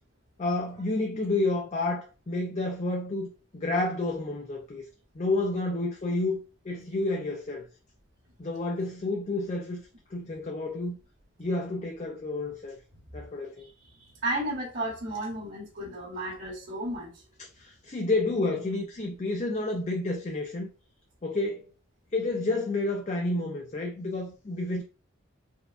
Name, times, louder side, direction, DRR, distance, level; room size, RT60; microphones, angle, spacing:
voice 1, 0.4-3.3 3.5-4.8 5.1-7.6 8.4-9.8 10.1-11.0 11.4-12.7 13.1-13.7 17.6-20.7 21.2-21.6 22.1-24.8, left 2 dB, 35° left, 0.5 m, -30 dB
voice 2, 14.0-17.1, right 1 dB, 80° right, 1.7 m, -33 dB
4.4 x 2.2 x 2.5 m
head